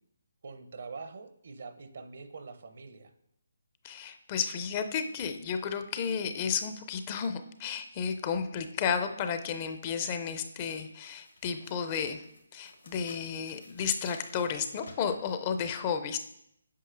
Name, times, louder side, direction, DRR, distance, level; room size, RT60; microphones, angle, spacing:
voice 1, 0.4-3.1, right 4 dB, 55° right, 10 dB, 0.6 m, -44 dB
voice 2, 3.8-12.2 12.5-16.2, left 7 dB, 30° left, 8 dB, 0.5 m, -32 dB
sound 1, 9.4-9.5 10.0-15.5, left 3 dB, 75° left, 1.5 m, -54 dB
8.3 x 5.3 x 2.5 m, 0.76 s
figure-of-eight pair, 145°, 0 cm